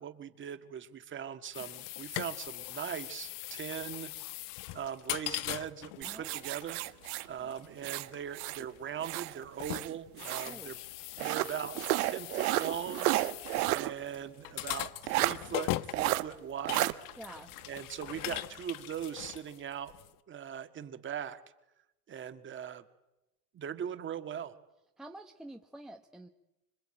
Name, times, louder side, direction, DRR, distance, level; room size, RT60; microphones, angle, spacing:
voice 1, 0.0-4.1 4.7-6.8 7.3-10.8 11.2-11.8 12.1-13.1 13.7-17.0 17.7-19.9 20.3-21.4 22.1-22.8 23.5-24.6, right 9 dB, 25° right, 9 dB, 1.8 m, -40 dB
sound 1, 1.5-20.1, left 16 dB, 45° left, 1.1 m, -41 dB
sound 2, 6.0-8.7 9.0-10.6 11.2-13.9 14.3-14.4 15.1-15.4 15.9-16.2 16.7-16.9, right 18 dB, 70° right, 1.4 m, -32 dB
voice 2, 17.2-17.5 25.0-26.3, right 1 dB, ahead, 3 dB, 1.2 m, -48 dB
25.5 x 23.0 x 9.0 m, 0.97 s
supercardioid pair, 135°, 46 cm